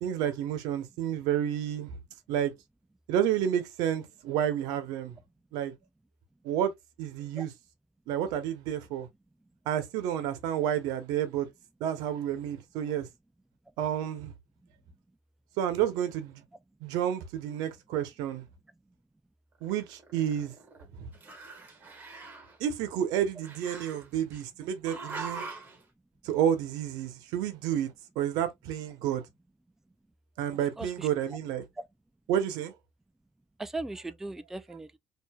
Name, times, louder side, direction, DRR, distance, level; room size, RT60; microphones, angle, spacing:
voice 1, 0.0-1.9 2.3-2.5 3.1-5.2 5.5-5.7 6.4-6.7 7.0-7.5 8.1-9.1 9.7-11.5 11.8-13.1 13.8-14.3 15.6-16.4 16.8-18.4 19.6-20.5 21.0-21.1 22.6-25.5 26.2-27.9 28.2-29.3 30.4-31.6 32.3-32.7, right 10 dB, 85° right, 0.9 m, -30 dB
Growling, 19.6-20.9 21.1-22.6 23.4-24.4 24.8-25.8, right 4 dB, 25° right, 1.6 m, -42 dB
voice 2, 30.8-31.1 31.8-31.9 33.6-35.0, right 2 dB, 5° right, 0.3 m, -38 dB
4.6 x 2.7 x 2.3 m
cardioid pair, 125°, 7 cm